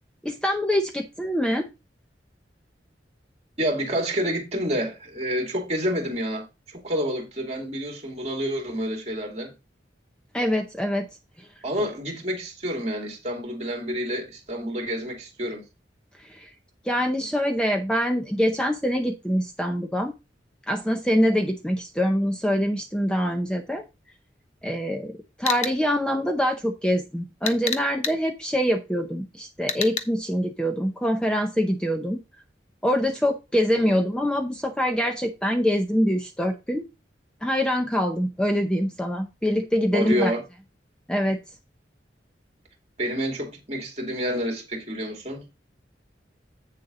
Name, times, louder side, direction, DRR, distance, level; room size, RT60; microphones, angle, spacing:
voice 1, 0.2-1.7 10.3-11.1 11.4-11.5 16.3-16.5 16.8-20.1 20.7-23.8 24.6-32.2 32.8-36.9 37.4-40.3 41.1-41.4, equal, 5° left, 0.7 m, -24 dB
voice 2, 3.6-9.5 11.6-15.6 33.8-34.0 39.9-40.4 43.0-45.4, equal, 35° right, 2.4 m, -28 dB
sound 1, 25.5-25.8 27.5-28.2 29.7-30.0, left 6 dB, 40° left, 0.8 m, -28 dB
8.3 x 6.8 x 3.8 m
head